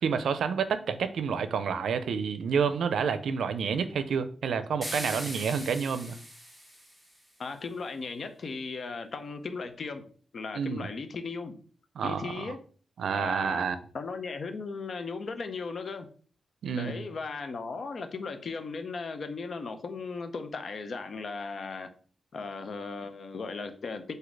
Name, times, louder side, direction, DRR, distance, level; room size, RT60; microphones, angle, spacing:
voice 1, 0.0-6.2 10.5-10.9 12.0-12.5 13.0-13.8 16.6-17.0, right 6 dB, 85° right, 11 dB, 0.4 m, -29 dB
sound 1, 4.8-7.2, equal, ahead, 1.4 m, -40 dB
voice 2, 7.4-11.5 12.0-12.6 13.1-13.7 13.9-16.1 16.7-21.9 22.3-24.1, left 4 dB, 55° left, 8 dB, 0.6 m, -37 dB
4.1 x 2.7 x 4.6 m, 0.44 s
wide cardioid pair, 120°, 0 cm